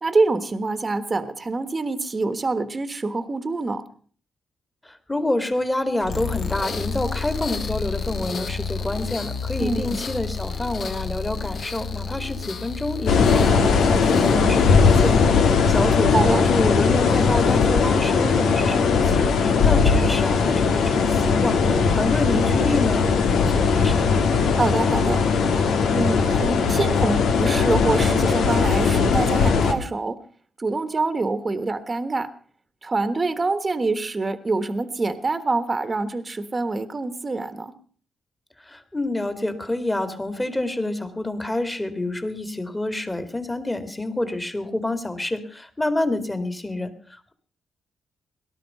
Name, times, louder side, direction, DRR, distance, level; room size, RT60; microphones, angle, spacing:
voice 1, 0.0-3.9 9.6-10.0 16.1-16.4 24.5-25.2 25.9-30.2 30.6-32.3 32.8-37.7, right 3 dB, 30° right, 11 dB, 1.4 m, -25 dB
voice 2, 4.8-24.1 38.6-47.3, left 2 dB, 15° left, 9 dB, 2.3 m, -28 dB
sound 1, 6.0-16.0, left 5 dB, 60° left, 1.8 m, -31 dB
sound 2, 13.1-29.7, left 5 dB, 85° left, 2.0 m, -19 dB
18.5 x 12.0 x 5.6 m, 0.43 s
cardioid pair, 90°, 0 cm